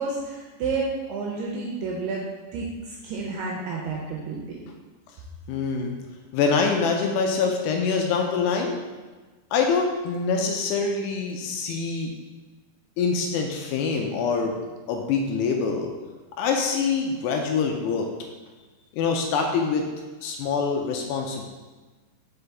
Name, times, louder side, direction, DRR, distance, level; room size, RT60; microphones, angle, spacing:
voice 1, 0.0-2.3 2.5-4.6, right 4 dB, 80° right, -2 dB, 2.5 m, -30 dB
voice 2, 5.5-6.0 6.3-8.8 9.5-12.1 13.0-14.6 14.9-15.9 16.4-18.1 18.9-19.8 20.2-21.5, left 5 dB, 80° left, 2 dB, 2.5 m, -25 dB
5.6 x 5.4 x 3.4 m, 1.3 s
omnidirectional pair, 5.1 m